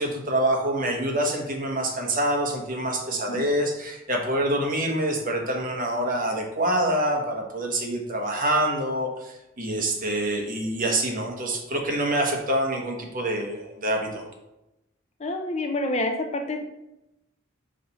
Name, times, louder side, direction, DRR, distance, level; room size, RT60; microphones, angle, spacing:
voice 1, 0.0-14.2, right 1 dB, 40° right, 1 dB, 1.2 m, -26 dB
voice 2, 15.2-16.6, left 2 dB, 30° left, 4 dB, 0.6 m, -28 dB
4.9 x 4.1 x 5.8 m, 0.92 s
head